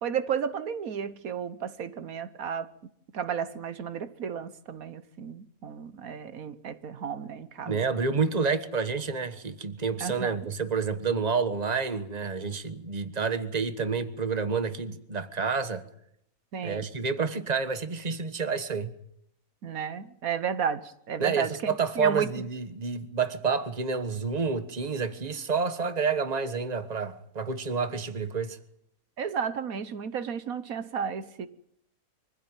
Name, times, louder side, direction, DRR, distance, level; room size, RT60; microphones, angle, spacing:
voice 1, 0.0-2.7 3.1-7.8 10.0-10.4 16.5-16.8 19.6-22.3 29.2-31.5, right 7 dB, 80° right, 1.5 m, -33 dB
voice 2, 7.6-15.8 16.6-18.9 21.2-28.6, right 5 dB, 30° right, 1.5 m, -29 dB
25.0 x 15.5 x 9.1 m
omnidirectional pair, 1.5 m